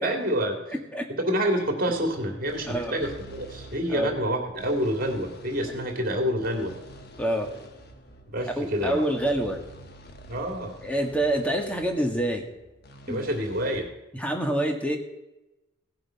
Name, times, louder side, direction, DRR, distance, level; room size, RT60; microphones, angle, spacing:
voice 1, 0.0-0.6 1.2-6.7 8.3-9.0 10.3-10.7 13.1-13.9, equal, 45° right, 3 dB, 2.7 m, -27 dB
voice 2, 0.7-1.0 2.7-3.0 3.9-4.1 7.2-7.5 8.6-9.6 10.8-12.4 13.1-13.2 14.1-15.0, right 1 dB, 5° left, 3 dB, 1.6 m, -26 dB
sound 1, 1.8-13.8, right 1 dB, 50° left, 1.3 m, -47 dB
17.0 x 7.9 x 5.8 m, 0.97 s
head